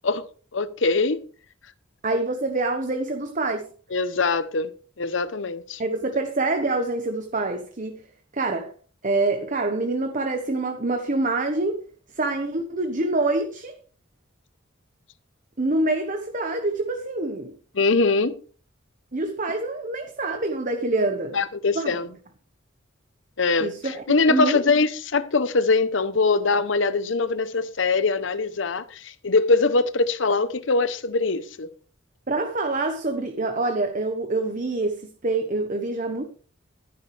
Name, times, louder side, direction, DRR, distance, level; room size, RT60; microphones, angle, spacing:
voice 1, 0.5-1.2 3.9-4.7 5.0-5.8 17.7-18.4 21.3-22.1 23.4-31.7, left 3 dB, 65° left, 0.8 m, -22 dB
voice 2, 2.0-3.6 5.8-8.0 8.3-8.7 9.0-11.8 12.1-13.7 15.6-17.5 19.1-21.4 21.7-22.1 23.6-24.6 32.3-36.2, right 2 dB, 40° right, 1.1 m, -26 dB
12.5 x 11.0 x 3.3 m
head